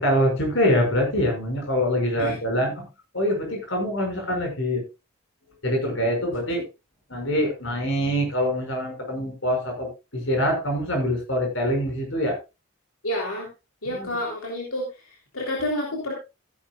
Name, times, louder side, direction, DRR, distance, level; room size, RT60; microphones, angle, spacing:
voice 1, 0.0-2.8 3.1-4.8 5.6-6.6 7.1-12.4 13.8-14.1, equal, 65° left, 3 dB, 6.0 m, -24 dB
voice 2, 13.0-13.5 13.8-16.1, left 1 dB, 85° left, 0 dB, 3.4 m, -29 dB
15.5 x 10.5 x 2.4 m, 0.26 s
head